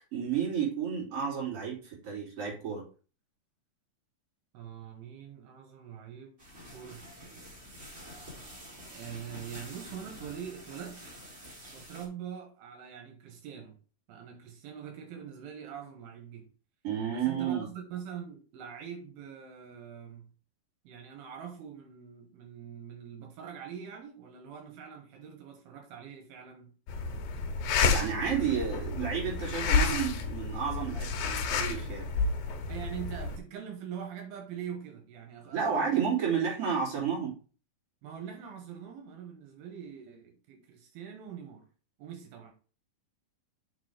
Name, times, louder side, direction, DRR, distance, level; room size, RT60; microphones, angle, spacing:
voice 1, 0.1-2.8 16.8-17.7 27.8-32.0 35.5-37.3, right 7 dB, 40° right, 3.8 m, -31 dB
voice 2, 4.5-6.4 6.7-7.4 8.8-11.0 11.7-13.8 14.1-16.5 17.1-20.3 20.8-26.7 32.7-36.1 38.0-41.7 42.0-42.5, right 8 dB, 85° right, 2.9 m, -43 dB
sound 1, 6.4-12.1, equal, 15° right, 2.7 m, -48 dB
sound 2, 26.9-33.4, left 5 dB, 80° left, 2.6 m, -30 dB
6.8 x 4.5 x 4.8 m
omnidirectional pair, 4.1 m